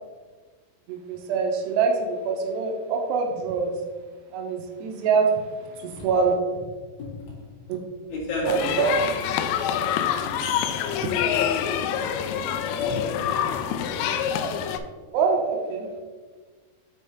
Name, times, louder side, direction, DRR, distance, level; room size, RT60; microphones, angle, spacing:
voice 1, 0.9-3.8 4.3-6.4 7.7-7.8 8.4-8.9 14.4-14.5 15.1-15.9, right 5 dB, 80° right, 2.8 m, -25 dB
voice 2, 7.0-7.4 8.1-8.9 12.8-13.3 13.9-14.1, left 2 dB, 40° left, 1.8 m, -33 dB
sound 1, 8.5-14.8, left 8 dB, 85° left, 2.2 m, -26 dB
6.3 x 5.2 x 4.3 m
omnidirectional pair, 5.0 m